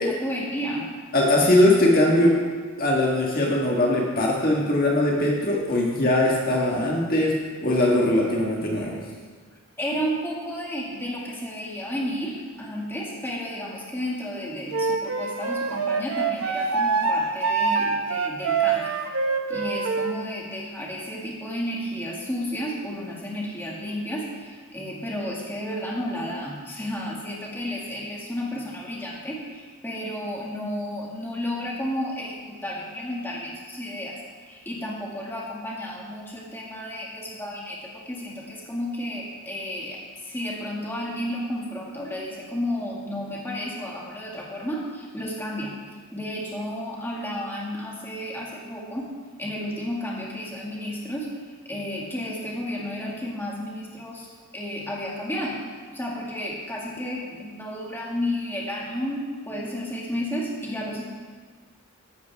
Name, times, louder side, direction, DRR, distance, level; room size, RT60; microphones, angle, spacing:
voice 1, 0.0-1.0 9.8-18.9 19.5-34.1 34.5-45.7 46.1-49.1 49.4-51.3 51.7-54.3 54.5-55.6 55.9-61.0, equal, 10° left, -4 dB, 2.0 m, -32 dB
voice 2, 1.1-2.4 2.8-9.0, left 1 dB, 40° left, -2 dB, 1.6 m, -21 dB
Wind instrument woodwind instrument, 14.7-20.2, right 4 dB, 75° right, 1.1 m, -25 dB
14.0 x 12.0 x 3.5 m, 1.5 s
head